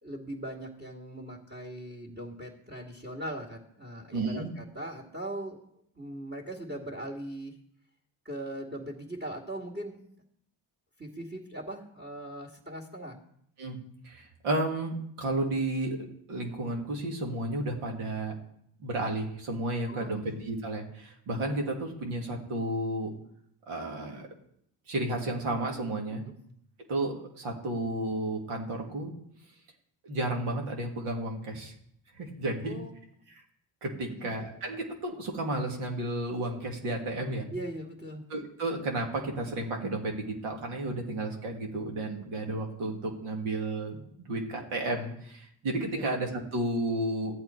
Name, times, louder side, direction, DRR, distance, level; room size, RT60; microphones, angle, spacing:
voice 1, 0.0-5.6 6.0-7.6 8.2-10.1 11.0-13.2 19.9-20.2 26.3-26.4 32.6-32.9 34.0-34.1 37.5-38.2 45.9-46.0, right 1 dB, 25° right, -1 dB, 2.4 m, -40 dB
voice 2, 4.1-4.5 13.6-13.8 14.0-16.0 16.3-18.4 18.8-23.1 23.7-24.3 24.9-26.2 26.9-29.1 30.0-31.7 32.2-32.8 33.8-37.5 38.3-47.3, right 2 dB, 90° right, 1 dB, 2.1 m, -32 dB
14.0 x 8.5 x 4.5 m, 0.71 s
supercardioid pair, 55°, 49 cm